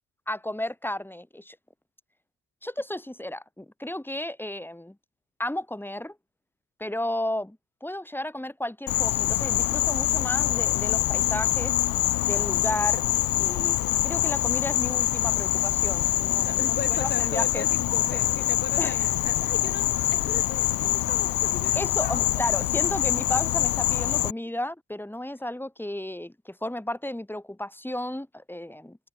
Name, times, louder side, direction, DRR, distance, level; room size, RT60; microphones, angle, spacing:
voice 1, 0.3-1.6 2.6-5.0 5.4-6.2 6.8-11.7 12.3-13.0 13.4-13.8 14.0-17.7 18.8-19.1 21.7-29.0, left 1 dB, 5° left, 7.2 m, -33 dB
Insect, 8.9-24.3, left 14 dB, 70° left, 2.5 m, -25 dB
voice 2, 16.4-22.2, left 4 dB, 30° left, 3.9 m, -37 dB
supercardioid pair, 70°, 34 cm